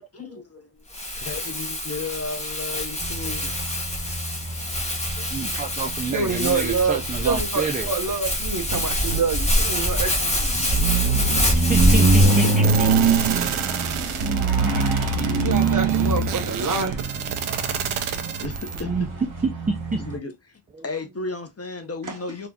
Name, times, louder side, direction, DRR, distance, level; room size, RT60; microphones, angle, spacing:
voice 1, 0.1-0.8 1.2-3.5 5.2-5.3 7.2-7.3 9.9-10.0 10.7-10.8 12.0-12.1 12.4-12.9 18.4-19.1 20.0-22.5, left 3 dB, 30° left, 0.7 m, -34 dB
Crumpling crinkling, 0.9-12.6, left 1 dB, 15° left, 1.1 m, -25 dB
sound 1, 3.0-20.2, right 3 dB, 70° right, 1.2 m, -25 dB
voice 2, 5.3-7.9 11.4-13.4 18.8-19.1 19.9-20.0, right 4 dB, 20° right, 0.3 m, -29 dB
voice 3, 6.0-10.6 15.4-17.0 22.1-22.2, right 4 dB, 40° right, 0.9 m, -27 dB
sound 2, 12.6-18.8, right 7 dB, 90° right, 0.7 m, -29 dB
4.1 x 2.8 x 2.3 m
wide cardioid pair, 150°, 48 cm